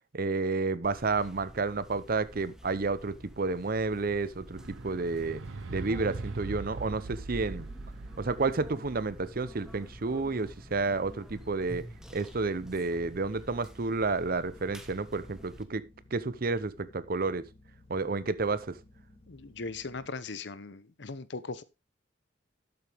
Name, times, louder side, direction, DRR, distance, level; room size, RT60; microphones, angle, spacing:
voice 1, 0.1-5.4 5.7-7.7 8.2-11.9 12.1-15.8 16.1-17.5 17.9-18.8, right 3 dB, 50° right, 0.7 m, -30 dB
sound 1, 0.8-15.6, equal, 5° right, 1.2 m, -49 dB
sound 2, 4.6-11.0 11.9-12.0, right 3 dB, 90° right, 0.7 m, -41 dB
sound 3, 6.6-20.1, left 1 dB, 35° left, 3.9 m, -58 dB
voice 2, 19.3-21.6, left 3 dB, 65° left, 0.9 m, -39 dB
12.0 x 8.1 x 3.5 m
head